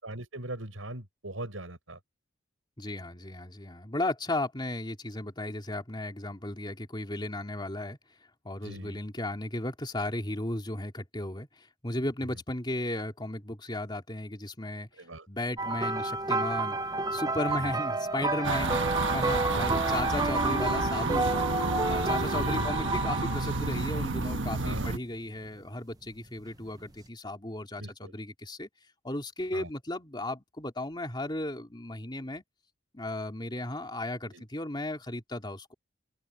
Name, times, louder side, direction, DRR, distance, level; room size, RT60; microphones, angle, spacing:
voice 1, 0.0-2.0 8.6-9.0 15.0-15.3 19.5-19.8 22.3-22.9 24.6-24.9 27.8-28.1 29.5-29.7 34.3-34.4, right 1 dB, 85° right, 6.9 m, -39 dB
voice 2, 2.8-8.2 8.4-14.9 15.3-16.8 17.1-21.3 21.9-28.7 29.0-32.4 32.9-35.7, left 1 dB, 25° left, 3.0 m, -35 dB
sound 1, 15.6-23.8 24.7-24.9 26.8-26.9, right 3 dB, 20° right, 0.7 m, -30 dB
sound 2, 18.4-25.0, right 2 dB, 65° right, 1.5 m, -30 dB
open air
head